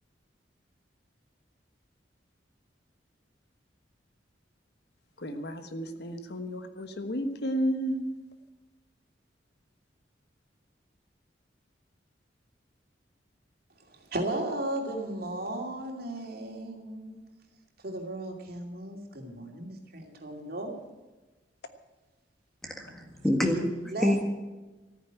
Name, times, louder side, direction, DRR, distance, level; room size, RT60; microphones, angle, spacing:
voice 1, 5.2-8.1, equal, 60° left, 8 dB, 1.3 m, -32 dB
voice 2, 13.9-17.2 17.8-20.7 23.9-24.1, right 1 dB, 55° right, 2 dB, 2.7 m, -35 dB
voice 3, 22.6-24.2, left 1 dB, ahead, 3 dB, 1.7 m, -27 dB
14.0 x 9.5 x 8.9 m, 1.2 s
head